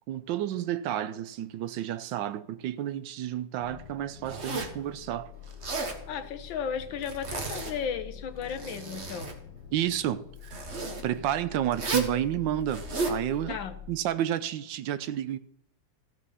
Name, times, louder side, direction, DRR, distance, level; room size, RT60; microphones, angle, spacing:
voice 1, 0.1-5.3 9.7-10.7 11.0-13.6 13.9-15.4, right 11 dB, 80° right, 1.4 m, -31 dB
sound 1, 3.6-14.0, left 9 dB, 65° left, 2.0 m, -46 dB
Zipper (clothing), 4.3-4.8 5.5-6.0 7.0-7.9 8.4-9.4 10.4-11.0 11.7-12.2 12.7-13.2, right 3 dB, 40° right, 1.5 m, -33 dB
voice 2, 6.1-9.3 13.5-13.8, left 7 dB, 85° left, 1.8 m, -34 dB
14.5 x 6.2 x 5.6 m
omnidirectional pair, 2.0 m